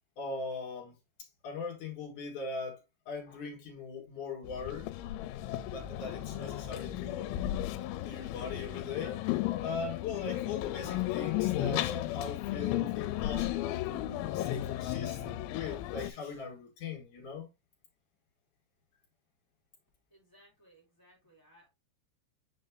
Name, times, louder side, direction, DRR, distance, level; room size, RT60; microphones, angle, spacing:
voice 1, 0.2-4.9 5.7-7.4 8.0-17.5, left 4 dB, 60° left, 2.3 m, -40 dB
sound 1, 4.4-16.1, left 14 dB, 85° left, 3.0 m, -34 dB
voice 2, 20.1-21.7, right 1 dB, 5° left, 3.8 m, -62 dB
7.0 x 6.4 x 2.3 m
omnidirectional pair, 5.4 m